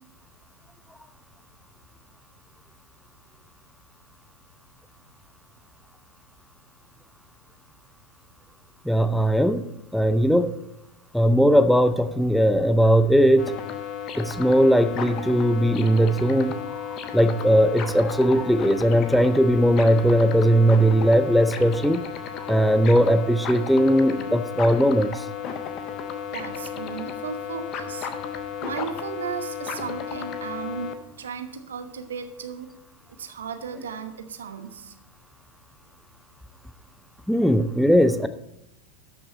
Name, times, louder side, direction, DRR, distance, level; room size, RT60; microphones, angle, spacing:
voice 1, 8.8-9.6 9.9-10.5 11.1-13.5 14.2-22.0 22.5-25.3 37.3-38.3, equal, ahead, 11 dB, 0.6 m, -19 dB
sound 1, 13.4-30.9, left 8 dB, 35° left, 0.9 m, -34 dB
voice 2, 26.3-28.1 28.6-32.7 33.2-35.0, right 6 dB, 65° right, 7 dB, 1.0 m, -35 dB
12.5 x 6.1 x 4.1 m, 0.83 s
figure-of-eight pair, 90°, 0 cm